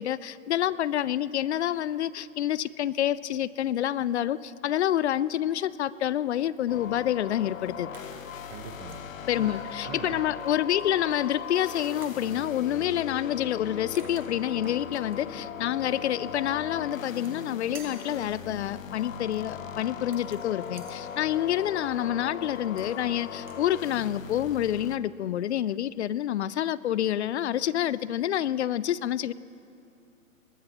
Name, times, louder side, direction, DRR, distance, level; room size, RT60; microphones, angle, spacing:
voice 1, 0.0-7.9 9.3-29.3, left 11 dB, 55° left, 19 dB, 0.5 m, -28 dB
sound 1, 6.7-25.0, left 7 dB, 70° left, 1.0 m, -39 dB
sound 2, 7.9-8.3 8.7-9.1 10.8-11.4 12.0-12.2 13.6-13.7 13.9-15.2 16.9-17.5 17.7-18.1 20.0-21.0 22.5-23.1 23.4-23.6, right 5 dB, 5° right, 0.5 m, -50 dB
voice 2, 8.5-9.0 9.3-10.2, right 8 dB, 35° right, 2 dB, 1.1 m, -42 dB
21.5 x 18.5 x 3.0 m, 2.5 s
hypercardioid pair, 140°, 41 cm